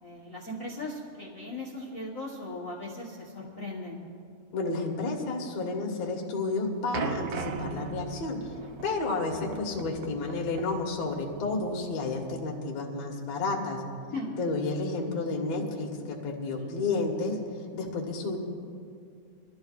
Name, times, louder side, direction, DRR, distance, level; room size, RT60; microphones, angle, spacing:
voice 1, 0.0-4.0 14.1-14.3 16.6-16.7, left 2 dB, 90° left, -3 dB, 0.7 m, -38 dB
voice 2, 4.5-8.4 8.8-13.8 14.4-17.4 17.7-18.4, left 3 dB, 60° left, 0 dB, 2.6 m, -31 dB
sound 1, 6.9-12.3, right 6 dB, 75° right, 1.4 m, -39 dB
24.5 x 13.5 x 2.4 m, 2.3 s
omnidirectional pair, 3.6 m